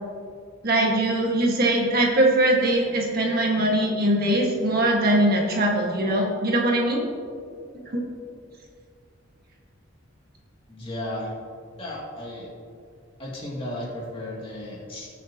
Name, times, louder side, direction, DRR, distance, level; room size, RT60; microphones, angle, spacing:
voice 1, 0.6-7.1 7.9-8.0, right 1 dB, 50° right, -2 dB, 1.8 m, -21 dB
voice 2, 10.7-11.3 11.8-12.5 13.2-15.1, left 1 dB, 25° left, -5 dB, 2.7 m, -34 dB
19.5 x 7.2 x 3.0 m, 2.3 s
head